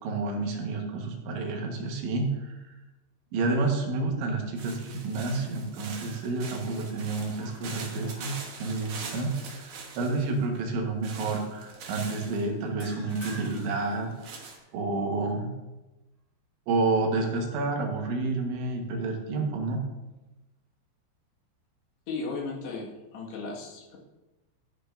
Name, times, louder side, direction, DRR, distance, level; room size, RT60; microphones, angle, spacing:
voice 1, 0.0-2.5 3.3-14.1 14.7-15.5 16.7-19.8, right 3 dB, 80° right, 1 dB, 3.7 m, -29 dB
sound 1, 4.6-10.4 11.0-12.4 13.1-14.6, right 4 dB, 60° right, 2.0 m, -43 dB
sound 2, 5.6-6.0 6.3-9.6 10.1-10.3 12.8-14.7, equal, 25° left, 1.7 m, -51 dB
voice 2, 22.1-24.0, left 3 dB, 70° left, -3 dB, 3.7 m, -36 dB
13.5 x 9.6 x 2.6 m, 1.1 s
omnidirectional pair, 5.3 m